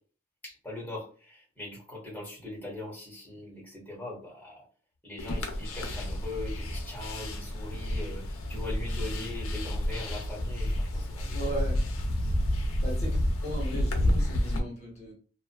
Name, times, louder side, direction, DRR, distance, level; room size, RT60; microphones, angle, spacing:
voice 1, 0.4-4.6 5.0-11.5, left 2 dB, 10° left, 1.3 m, -41 dB
sound 1, 5.2-14.6, left 1 dB, 90° left, 0.6 m, -30 dB
voice 2, 11.2-11.9 12.3-15.1, right 1 dB, 35° left, 1.2 m, -38 dB
2.7 x 2.5 x 2.2 m
head